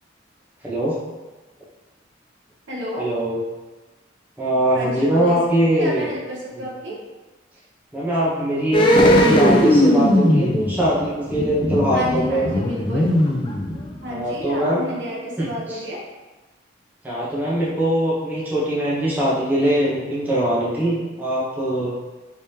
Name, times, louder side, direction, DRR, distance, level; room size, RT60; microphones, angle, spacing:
voice 1, 0.6-1.0 3.0-3.4 4.4-6.1 6.5-6.6 7.9-12.5 14.1-14.8 15.4-15.8 17.0-21.9, right 1 dB, 10° right, -8 dB, 0.8 m, -22 dB
voice 2, 2.7-3.0 4.7-5.4 5.8-7.0 11.9-13.1 14.0-16.0, equal, 75° right, -4 dB, 0.9 m, -30 dB
sound 1, 8.7-14.2 14.4-14.5, left 1 dB, 25° left, 0.4 m, -18 dB
3.3 x 3.3 x 2.8 m, 1.2 s
head